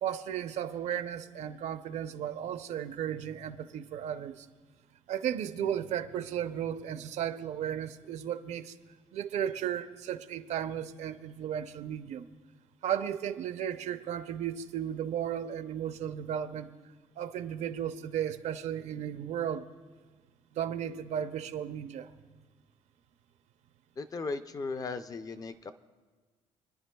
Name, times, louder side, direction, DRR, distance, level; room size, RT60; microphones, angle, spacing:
voice 1, 0.0-4.5 5.1-8.8 9.1-12.3 12.8-16.7 17.2-19.7 20.5-22.1, right 9 dB, 75° right, 0.6 m, -34 dB
voice 2, 24.0-25.7, left 4 dB, 30° left, 0.4 m, -37 dB
26.5 x 10.5 x 2.3 m
cardioid pair, 130°, 12 cm